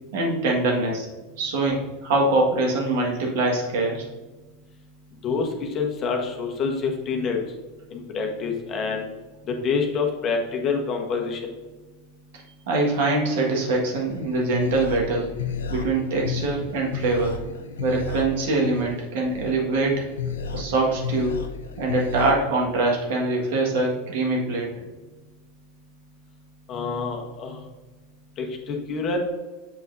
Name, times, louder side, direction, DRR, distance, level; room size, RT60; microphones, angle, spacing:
voice 1, 0.1-1.1 1.4-4.0 12.7-15.3 15.7-17.4 17.8-20.1 20.5-21.4 21.8-24.7, right 2 dB, 65° right, -1 dB, 1.7 m, -23 dB
voice 2, 5.2-7.4 7.9-9.0 9.6-11.4 26.7-27.6 28.4-29.2, left 5 dB, 40° left, 2 dB, 1.2 m, -27 dB
sound 1, 14.1-22.3, left 5 dB, 75° left, 0.7 m, -33 dB
7.7 x 5.7 x 2.6 m, 1.2 s
figure-of-eight pair, 85°, 0 cm